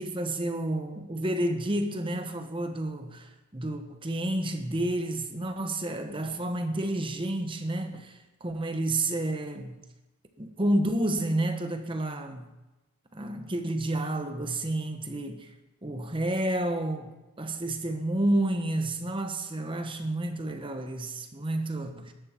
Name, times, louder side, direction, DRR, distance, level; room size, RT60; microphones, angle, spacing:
voice 1, 0.0-9.8 10.4-12.5 13.1-15.5 15.8-22.1, right 1 dB, 25° right, 1.0 m, -30 dB
13.5 x 11.5 x 4.4 m
head